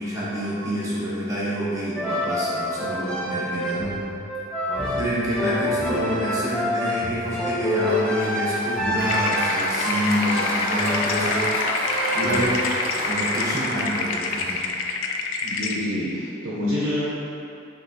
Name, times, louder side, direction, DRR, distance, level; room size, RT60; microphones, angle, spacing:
voice 1, 0.0-3.8 4.7-11.6 12.1-12.6 12.9-14.6, equal, 15° right, -10 dB, 0.9 m, -27 dB
sound 1, 2.0-12.6, left 1 dB, 5° left, 0.4 m, -27 dB
Applause, 7.9-15.0, equal, 45° left, 0.7 m, -30 dB
sound 2, 9.1-15.8, left 4 dB, 70° left, 0.3 m, -28 dB
voice 2, 15.4-17.1, left 1 dB, 60° right, -8 dB, 0.7 m, -27 dB
5.9 x 2.6 x 2.6 m, 2.7 s
head